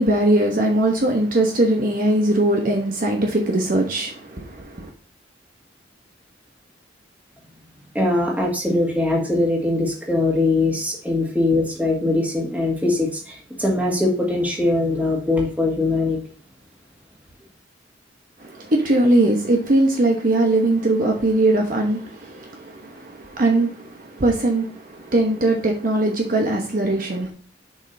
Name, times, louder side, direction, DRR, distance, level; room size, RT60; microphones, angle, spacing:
voice 1, 0.0-4.9 18.4-27.3, right 1 dB, 45° right, 1.0 m, -20 dB
voice 2, 7.9-16.2, left 2 dB, 10° right, 1.9 m, -21 dB
7.3 x 5.4 x 2.7 m
head